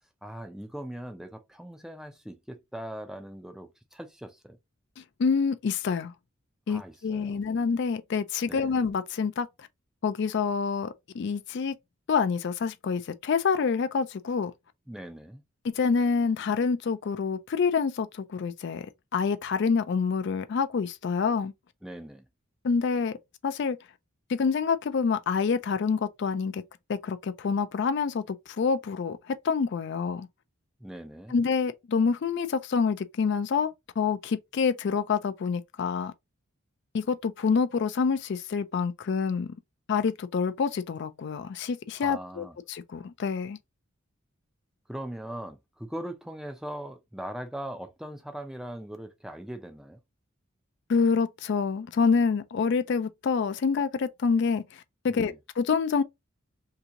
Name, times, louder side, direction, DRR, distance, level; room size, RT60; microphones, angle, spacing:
voice 1, 0.2-4.6 6.7-7.4 8.5-8.8 14.9-15.4 21.8-22.2 30.8-31.3 42.0-42.6 44.9-50.0 55.1-55.4, right 1 dB, 5° right, 0.5 m, -40 dB
voice 2, 5.0-6.1 6.7-9.7 10.0-11.8 12.1-14.5 15.6-18.9 19.1-21.5 22.6-23.2 23.4-23.8 24.3-26.6 26.9-30.3 31.3-36.1 36.9-39.5 39.9-43.6 50.9-56.0, left 5 dB, 55° left, 0.4 m, -27 dB
2.8 x 2.7 x 3.7 m
head